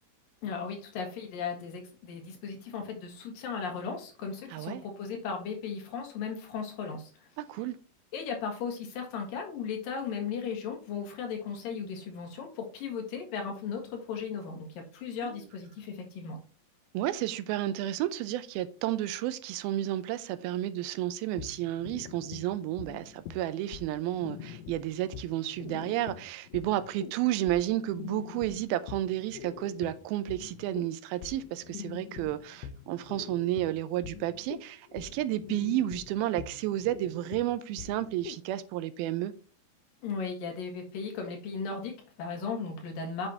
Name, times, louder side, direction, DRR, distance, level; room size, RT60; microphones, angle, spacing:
voice 1, 0.4-7.3 8.1-16.4 40.0-43.3, left 5 dB, 70° left, 3.3 m, -36 dB
voice 2, 4.5-4.8 7.4-7.8 15.2-15.4 16.9-39.3, right 14 dB, 85° right, 2.5 m, -32 dB
sound 1, 21.3-38.4, left 9 dB, 85° left, 2.6 m, -45 dB
8.9 x 6.3 x 2.9 m
omnidirectional pair, 4.3 m